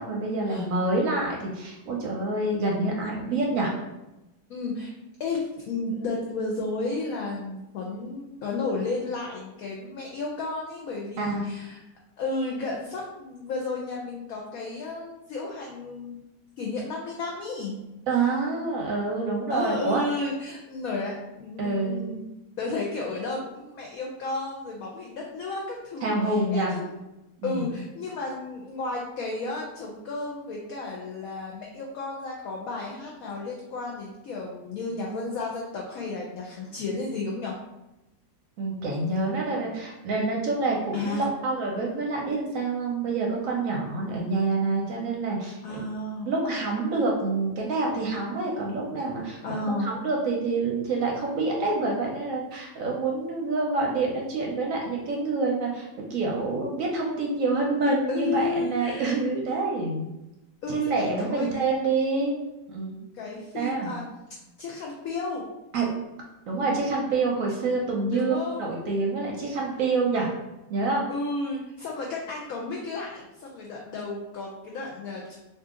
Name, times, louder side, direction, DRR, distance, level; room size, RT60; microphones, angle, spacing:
voice 1, 0.0-3.7 11.2-11.5 18.1-20.0 21.6-22.0 26.0-26.8 27.4-27.8 38.6-45.8 46.2-60.1 60.7-62.3 62.7-63.0 63.5-63.9 65.7-65.9 66.5-70.3 70.7-71.0, right 3 dB, 65° right, -1 dB, 0.9 m, -27 dB
voice 2, 4.5-4.9 5.2-11.8 12.2-16.2 16.6-17.8 19.5-22.2 22.6-26.9 27.4-37.5 39.5-39.6 40.9-41.2 45.6-46.3 49.4-49.9 58.1-59.2 60.6-61.5 63.1-64.1 64.6-65.4 68.1-68.7 71.1-75.4, left 3 dB, 70° left, -2 dB, 0.9 m, -32 dB
2.7 x 2.6 x 3.6 m, 0.96 s
omnidirectional pair, 1.8 m